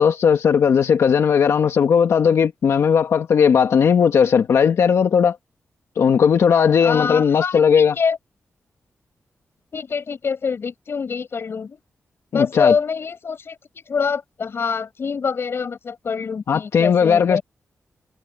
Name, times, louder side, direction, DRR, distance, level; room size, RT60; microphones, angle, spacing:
voice 1, 0.0-5.4 6.0-7.9 12.3-12.7 16.5-17.4, left 7 dB, 90° left, 1.7 m, -17 dB
voice 2, 6.8-8.2 9.7-11.8 12.3-17.4, left 5 dB, 55° left, 6.8 m, -25 dB
wide cardioid pair, 130°, 5 cm